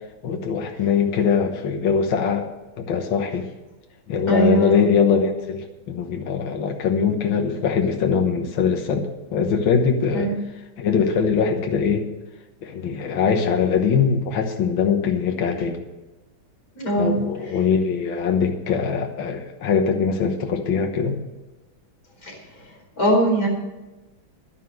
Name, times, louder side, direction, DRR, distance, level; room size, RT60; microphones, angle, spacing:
voice 1, 0.2-2.5 2.8-3.5 4.1-9.1 9.3-10.3 10.8-12.1 12.6-15.8 17.0-21.2, left 6 dB, 75° left, 3 dB, 2.0 m, -22 dB
voice 2, 4.3-4.8 10.1-10.4 16.8-17.2 22.2-22.3 23.0-23.5, right 2 dB, 45° left, -1 dB, 4.9 m, -20 dB
11.5 x 11.0 x 6.6 m, 1.1 s
omnidirectional pair, 2.2 m